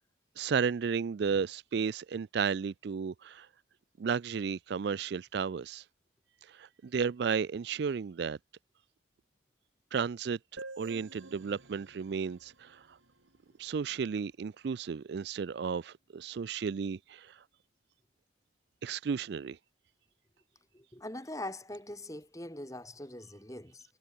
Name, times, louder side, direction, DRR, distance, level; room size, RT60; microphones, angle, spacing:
voice 1, 0.4-3.5 4.0-5.8 6.5-8.4 9.9-13.0 13.6-17.4 18.8-19.6, right 6 dB, 55° right, 0.3 m, -33 dB
sound 1, 10.6-14.1, right 2 dB, 85° right, 7.2 m, -50 dB
voice 2, 20.7-23.8, left 1 dB, 15° left, 4.3 m, -42 dB
head